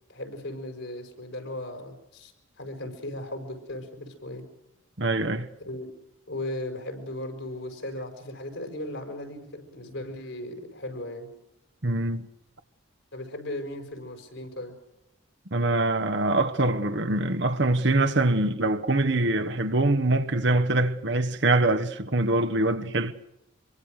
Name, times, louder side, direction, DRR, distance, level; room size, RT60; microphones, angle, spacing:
voice 1, 0.1-2.3 2.6-4.4 5.6-5.9 6.3-11.3 13.1-14.7, left 1 dB, 70° left, 5.6 m, -37 dB
voice 2, 5.0-5.5 11.8-12.3 15.5-23.1, right 2 dB, 60° right, 1.3 m, -24 dB
25.5 x 23.0 x 6.5 m
head